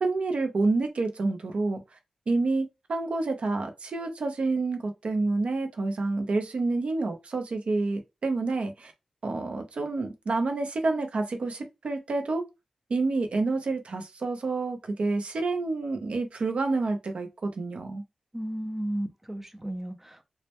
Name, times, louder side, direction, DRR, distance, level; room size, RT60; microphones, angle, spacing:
voice 1, 0.0-1.8 2.3-8.9 9.2-12.4 12.9-18.0, right 3 dB, 70° right, 0.5 m, -28 dB
voice 2, 18.3-20.2, right 1 dB, 10° right, 0.4 m, -34 dB
2.1 x 2.0 x 2.8 m
wide cardioid pair, 110°, 2 cm